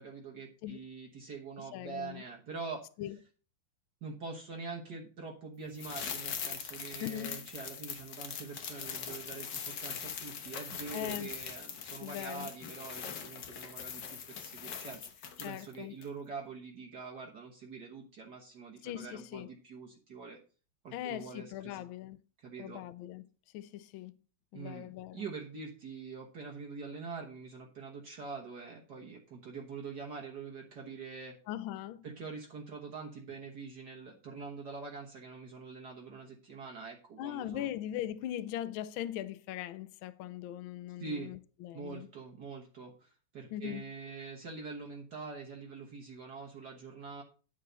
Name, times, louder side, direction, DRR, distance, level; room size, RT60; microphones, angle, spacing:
voice 1, 0.0-2.8 4.0-15.0 15.4-20.4 20.8-21.9 22.4-22.8 24.5-24.9 25.1-31.4 32.0-37.7 41.0-41.3 41.7-47.2, right 4 dB, 55° right, 1.8 m, -44 dB
voice 2, 1.6-2.2 3.0-3.2 7.0-7.5 10.9-11.3 12.0-12.5 15.4-16.0 18.8-19.5 20.9-22.2 22.6-23.2 23.5-24.1 24.5-25.3 31.5-32.0 37.2-42.1 43.5-43.8, left 12 dB, 75° left, 1.3 m, -40 dB
sound 1, 5.8-15.7 16.0-16.1, left 7 dB, 55° left, 1.6 m, -42 dB
10.5 x 6.8 x 4.0 m
omnidirectional pair, 2.4 m